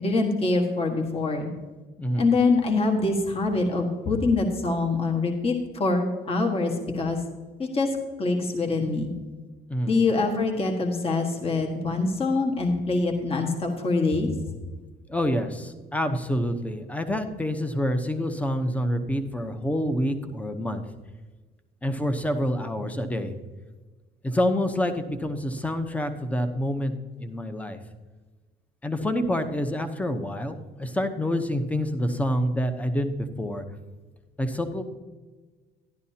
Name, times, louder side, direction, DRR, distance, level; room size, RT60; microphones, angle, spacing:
voice 1, 0.0-1.5 2.2-7.2 7.6-7.9 8.2-9.1 9.8-14.3, left 3 dB, 35° left, 2 dB, 1.6 m, -24 dB
voice 2, 15.1-20.8 21.8-23.3 24.2-26.9 27.2-27.8 28.8-33.6 34.4-34.8, equal, 10° left, 8 dB, 0.9 m, -27 dB
12.5 x 11.0 x 2.8 m, 1.3 s
cardioid pair, 110°, 17 cm